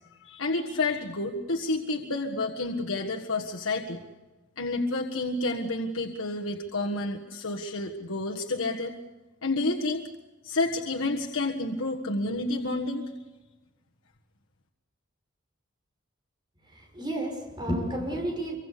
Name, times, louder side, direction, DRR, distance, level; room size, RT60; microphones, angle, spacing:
voice 1, 0.2-4.0 4.6-8.9 9.4-10.0 10.4-13.0, left 2 dB, 80° left, 1.6 m, -29 dB
voice 2, 16.7-18.6, right 1 dB, 20° right, 6.6 m, -31 dB
26.5 x 24.5 x 6.9 m
head